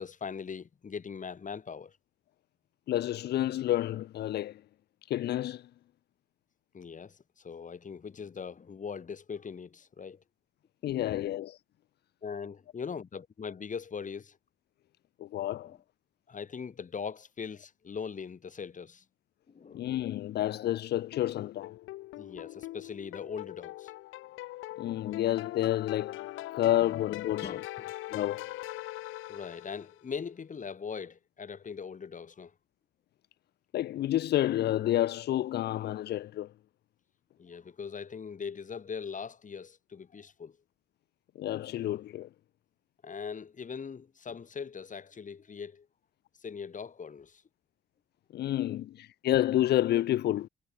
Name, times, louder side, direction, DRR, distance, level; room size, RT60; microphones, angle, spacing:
voice 1, 0.0-2.0 6.7-10.2 11.2-11.3 12.2-14.4 15.6-15.7 16.3-19.0 19.5-19.9 22.2-23.9 25.0-25.1 26.5-27.0 27.4-27.9 29.3-32.5 37.4-40.6 43.0-45.9 46.4-47.4, left 6 dB, 40° left, 2.8 m, -41 dB
voice 2, 2.9-4.6 5.0-5.7 10.8-11.6 15.2-15.8 19.7-21.7 24.8-26.2 26.5-27.6 28.1-28.5 33.7-36.5 41.4-42.3 48.3-50.5, left 13 dB, 55° left, 0.4 m, -29 dB
sound 1, 21.1-30.0, left 17 dB, 85° left, 0.7 m, -42 dB
cardioid pair, 90°, 20 cm